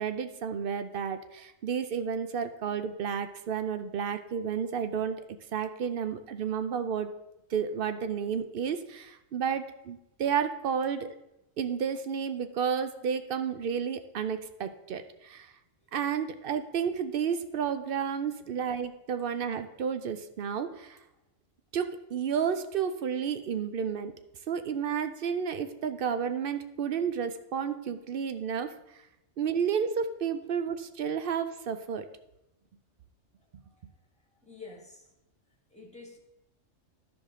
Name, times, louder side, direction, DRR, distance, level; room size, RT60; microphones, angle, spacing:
voice 1, 0.0-5.2 5.5-7.1 7.5-11.2 11.6-15.5 15.9-21.0 21.7-24.1 24.5-28.7 29.4-32.1, right 7 dB, 55° right, 10 dB, 0.7 m, -31 dB
voice 2, 34.4-35.1 35.7-36.2, left 4 dB, 5° left, 0 dB, 1.6 m, -49 dB
13.5 x 5.0 x 3.7 m, 0.88 s
omnidirectional pair, 1.3 m